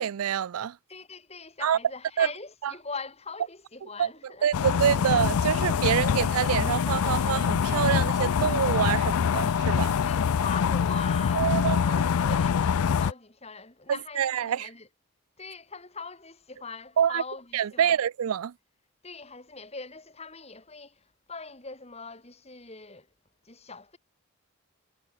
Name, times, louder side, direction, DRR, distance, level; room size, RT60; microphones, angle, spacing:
voice 1, 0.0-0.8 1.6-1.8 2.2-2.3 2.6-2.7 4.0-4.1 4.4-10.0 11.3-12.0 14.2-14.7 17.0-17.2 17.5-18.5, right 8 dB, 80° right, 0.4 m, -26 dB
voice 2, 0.9-4.7 10.0-14.9 15.4-18.0 19.0-23.1 23.4-24.0, left 4 dB, 30° left, 3.5 m, -42 dB
sound 1, 4.5-13.1, left 7 dB, 85° left, 0.4 m, -25 dB
head